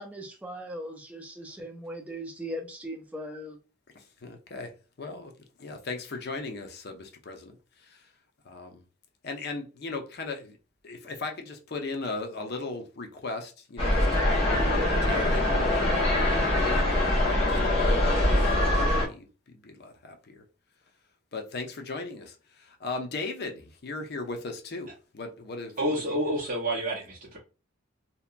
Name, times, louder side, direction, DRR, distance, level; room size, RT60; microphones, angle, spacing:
voice 1, 0.0-3.6, equal, 5° right, 0.4 m, -39 dB
voice 2, 3.9-4.7 5.0-5.3 5.6-8.1 8.4-8.8 9.2-10.6 10.8-14.4 15.0-18.5 19.0-20.4 21.3-26.2, left 3 dB, 50° left, 0.5 m, -38 dB
sound 1, 13.8-19.1, left 1 dB, 30° left, 1.0 m, -23 dB
voice 3, 25.8-27.4, right 1 dB, 40° right, 0.7 m, -29 dB
2.8 x 2.1 x 2.4 m
head